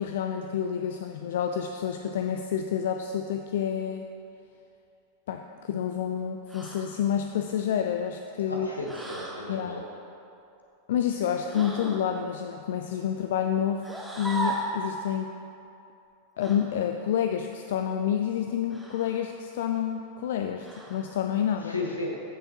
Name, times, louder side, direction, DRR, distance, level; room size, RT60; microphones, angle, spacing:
voice 1, 0.0-4.1 5.3-8.7 9.5-9.8 10.9-15.3 16.4-21.7, left 9 dB, 55° left, 5 dB, 0.3 m, -29 dB
sound 1, 6.5-6.9 8.8-9.4 11.5-12.0 13.8-14.8 16.4-16.6 18.7-19.2 20.6-21.1, right 1 dB, ahead, 1.4 m, -35 dB
voice 2, 8.5-9.9 21.6-22.2, left 2 dB, 80° left, -1 dB, 1.3 m, -34 dB
15.0 x 6.4 x 2.9 m, 2.7 s
figure-of-eight pair, 90°, 0 cm